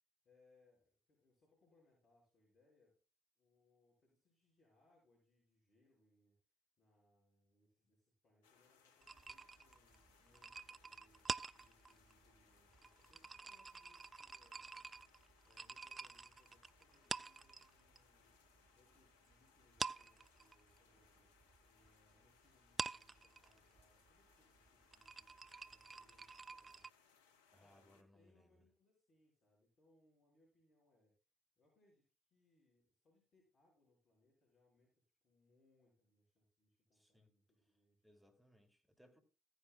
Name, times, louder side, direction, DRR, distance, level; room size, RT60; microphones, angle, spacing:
voice 1, 0.2-3.0 3.4-6.4 6.8-21.3 21.6-26.9 27.6-31.2 31.6-38.2, left 2 dB, 45° left, 5.5 m, -75 dB
sound 1, 8.4-28.0, left 6 dB, 80° left, 1.0 m, -72 dB
sound 2, 9.0-18.0 18.3-19.3 19.6-26.9, right 4 dB, 30° right, 0.4 m, -48 dB
voice 2, 27.5-28.6 36.9-37.3 38.0-39.2, equal, ahead, 2.8 m, -68 dB
15.0 x 9.6 x 2.4 m
hypercardioid pair, 55°, 0 cm